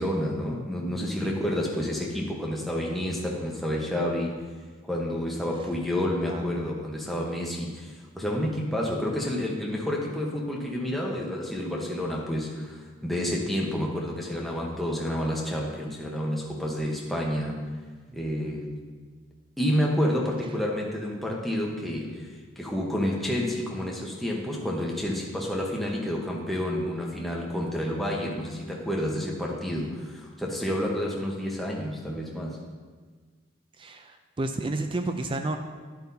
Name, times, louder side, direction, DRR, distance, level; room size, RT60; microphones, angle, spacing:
voice 1, 0.0-4.3 4.8-17.6 18.1-18.7 19.6-22.3 22.6-32.6, equal, ahead, -2 dB, 1.0 m, -29 dB
voice 2, 33.8-35.6, right 2 dB, 25° right, 7 dB, 0.3 m, -31 dB
10.5 x 8.0 x 2.7 m, 1.5 s
head